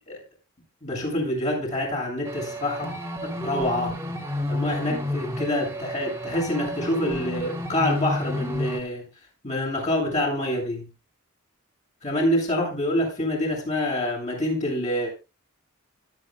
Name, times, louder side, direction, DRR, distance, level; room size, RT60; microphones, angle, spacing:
voice 1, 0.8-2.9 3.2-4.0 4.5-9.0 9.4-10.9 12.0-15.2, left 1 dB, 35° left, -2 dB, 7.5 m, -26 dB
sound 1, 2.3-8.8, left 1 dB, 15° right, 2.8 m, -31 dB
25.0 x 8.8 x 2.4 m, 0.28 s
head